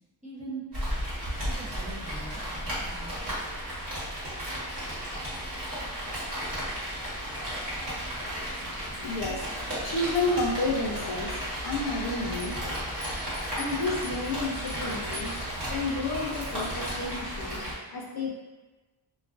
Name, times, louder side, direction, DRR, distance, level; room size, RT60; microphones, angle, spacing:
voice 1, 0.2-0.6 1.5-3.2, right 3 dB, 15° right, -8 dB, 0.5 m, -42 dB
Rain, 0.7-17.7, equal, 40° right, 1.1 m, -34 dB
voice 2, 8.4-8.7 9.0-11.3 11.6-12.6 13.6-15.3 15.7-18.3, left 2 dB, 50° left, -3 dB, 0.6 m, -31 dB
sound 1, 12.4-14.3 14.7-15.6 15.9-16.0 16.3-17.1, equal, 75° right, 1.1 m, -44 dB
2.3 x 2.3 x 2.4 m, 1.2 s
cardioid pair, 125°, 50 cm